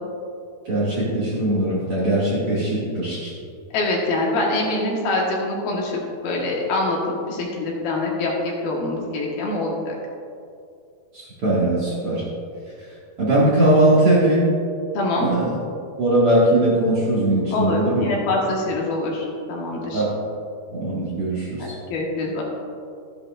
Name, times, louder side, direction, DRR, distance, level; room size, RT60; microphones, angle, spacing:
voice 1, 0.7-3.3 11.1-12.2 13.2-14.5 15.2-15.6 16.0-18.1 19.9-20.1 20.7-21.7, right 1 dB, 45° right, -8 dB, 2.1 m, -20 dB
voice 2, 3.7-9.9 14.9-15.3 17.5-20.0 21.6-22.4, left 2 dB, 70° left, -2 dB, 3.1 m, -24 dB
13.5 x 10.5 x 2.4 m, 2.4 s
omnidirectional pair, 4.6 m